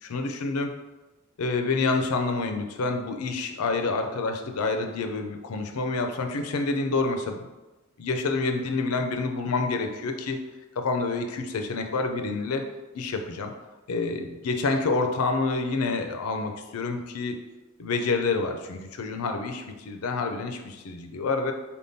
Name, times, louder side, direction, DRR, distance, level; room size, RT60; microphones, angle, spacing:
voice 1, 0.0-0.7 1.4-7.4 8.0-10.4 10.8-12.6 12.9-13.5 13.9-17.4 17.8-21.5, left 3 dB, 85° left, 5 dB, 0.5 m, -28 dB
4.3 x 3.6 x 2.7 m, 1.1 s
head